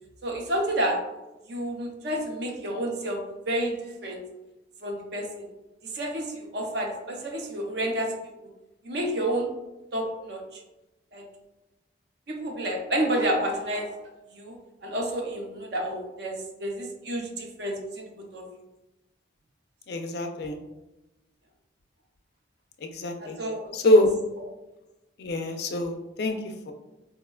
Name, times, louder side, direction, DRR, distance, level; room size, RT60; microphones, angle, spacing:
voice 1, 0.2-1.0 1.5-4.2 4.8-5.4 5.8-8.1 8.8-9.5 9.9-10.4 11.1-11.2 12.3-14.0 14.3-14.6 14.8-18.5 23.2-23.7, right 1 dB, 55° right, 2 dB, 0.5 m, -30 dB
voice 2, 19.9-20.6 22.8-23.4 23.7-24.1 25.2-26.7, left 1 dB, 55° left, 6 dB, 0.3 m, -24 dB
4.2 x 2.1 x 2.2 m, 1.0 s
head